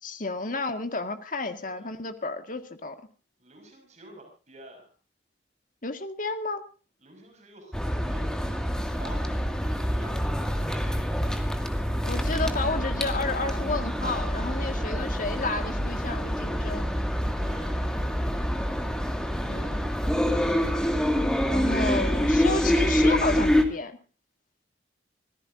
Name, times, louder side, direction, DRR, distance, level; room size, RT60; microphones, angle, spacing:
voice 1, 0.0-3.0 5.8-6.6 12.0-16.9 19.5-19.8 21.5-24.0, left 3 dB, 45° left, 7 dB, 1.9 m, -31 dB
voice 2, 1.6-2.0 3.4-4.9 7.0-11.3 14.7-15.0 17.3-17.9, right 1 dB, 40° right, 3 dB, 6.2 m, -49 dB
sound 1, 7.7-23.6, equal, 5° left, 2.2 m, -26 dB
26.0 x 16.5 x 2.7 m, 0.36 s
head